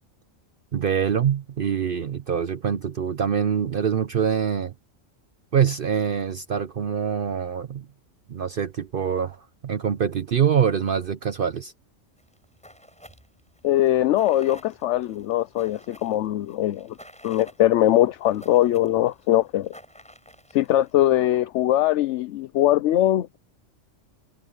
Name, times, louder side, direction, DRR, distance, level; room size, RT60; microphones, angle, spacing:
voice 1, 0.7-4.7 5.5-7.9 8.3-11.7, right 8 dB, 55° right, 0.7 m, -24 dB
sound 1, 12.2-20.9, equal, 5° left, 6.3 m, -50 dB
voice 2, 13.6-17.0 17.2-19.7 20.5-23.4, left 13 dB, 70° left, 0.9 m, -21 dB
omnidirectional pair, 1.3 m